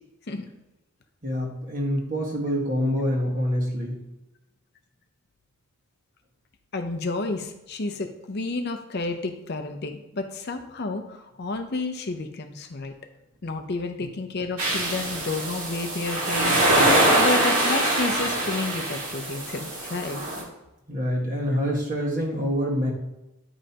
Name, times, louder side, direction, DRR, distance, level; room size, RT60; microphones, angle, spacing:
voice 1, 1.2-4.0 20.9-22.9, equal, 40° right, -2 dB, 1.6 m, -26 dB
voice 2, 6.7-12.9 13.4-20.2, left 3 dB, 50° left, 6 dB, 0.6 m, -31 dB
sound 1, 14.6-20.4, right 1 dB, 80° right, 2.0 m, -23 dB
9.7 x 5.2 x 2.9 m, 0.94 s
head